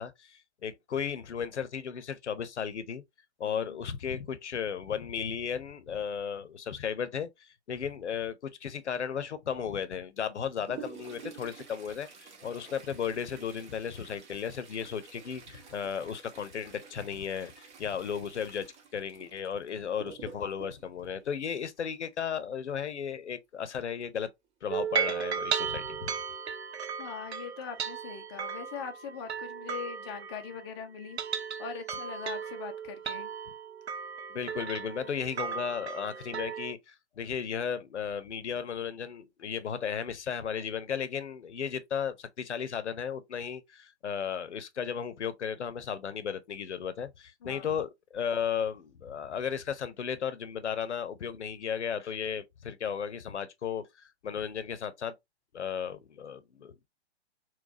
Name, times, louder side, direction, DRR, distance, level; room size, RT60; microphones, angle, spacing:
voice 1, 0.0-3.0 3.4-24.3 24.6-26.1 34.3-53.9 54.2-55.1 55.5-56.9, left 7 dB, 80° left, 0.7 m, -35 dB
voice 2, 3.4-3.8 27.0-33.3 47.4-47.7, left 7 dB, 25° left, 0.4 m, -42 dB
Toilet flush, 10.2-22.1 24.0-24.1 24.4-24.5 25.3-25.4 26.1-26.3 26.8-26.9, right 6 dB, 40° right, 1.1 m, -50 dB
sound 1, 24.7-30.7 31.0-36.7, right 7 dB, 70° right, 0.6 m, -36 dB
4.0 x 2.2 x 2.5 m
figure-of-eight pair, 120°, 34 cm